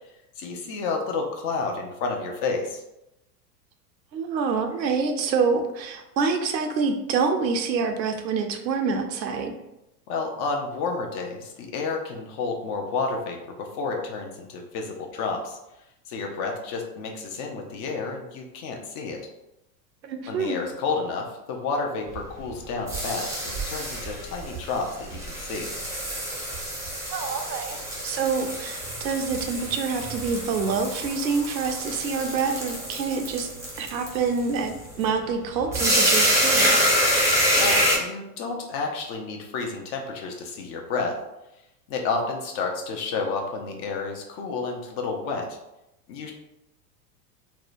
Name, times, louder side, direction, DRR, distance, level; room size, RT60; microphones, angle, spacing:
voice 1, 0.4-2.8 10.1-15.6 16.1-19.2 20.3-25.7 37.5-41.2 41.9-45.6 46.1-46.3, left 4 dB, 40° left, 1 dB, 0.5 m, -30 dB
voice 2, 4.1-9.5 20.0-20.6 27.1-33.5 33.8-36.8, right 5 dB, 90° right, 6 dB, 0.6 m, -26 dB
sound 1, 22.1-38.0, equal, 5° right, 0.5 m, -26 dB
2.7 x 2.1 x 2.4 m, 0.90 s
hypercardioid pair, 95°, 50 cm